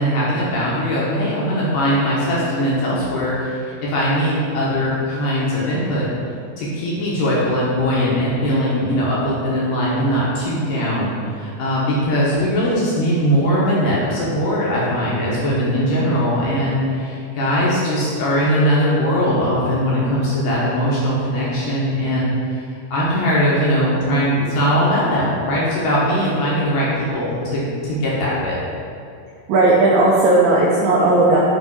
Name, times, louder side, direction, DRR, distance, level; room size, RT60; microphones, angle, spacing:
voice 1, 0.0-6.1 6.6-22.6 22.9-28.6, equal, 70° left, -7 dB, 2.4 m, -20 dB
voice 2, 29.5-31.4, right 2 dB, 80° right, -5 dB, 2.2 m, -15 dB
7.7 x 3.3 x 4.6 m, 2.5 s
omnidirectional pair, 4.4 m